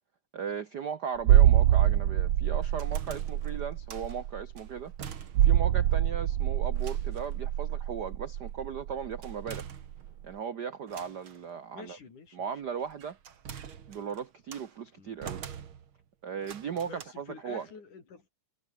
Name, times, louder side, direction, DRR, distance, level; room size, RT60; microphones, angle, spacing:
voice 1, 0.3-4.9 5.4-9.7 10.2-12.0 12.3-13.2 13.9-15.4 16.2-17.7, right 7 dB, 80° right, 0.9 m, -37 dB
sound 1, 1.2-9.7 9.9-10.1, right 12 dB, 65° right, 2.0 m, -25 dB
sound 2, 2.6-4.2 4.6-5.7 6.0-6.1 6.7-7.4 9.2-10.3 10.9-11.5 12.6-14.7 15.2-16.0 16.4-17.0, right 8 dB, 50° right, 2.2 m, -45 dB
voice 2, 11.7-12.5 15.0-15.2 16.8-18.3, left 5 dB, 80° left, 6.3 m, -48 dB
omnidirectional pair, 3.5 m